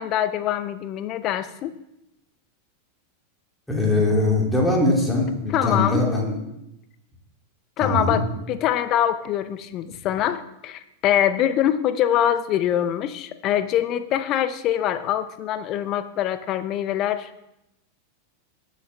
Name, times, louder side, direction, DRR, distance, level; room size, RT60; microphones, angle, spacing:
voice 1, 0.0-1.8 5.5-6.1 7.8-17.3, left 11 dB, 35° left, 12 dB, 0.7 m, -24 dB
voice 2, 3.7-6.4 7.8-8.2, left 2 dB, 5° left, -2 dB, 2.7 m, -21 dB
19.0 x 6.6 x 3.4 m, 0.85 s
figure-of-eight pair, 90°, 0 cm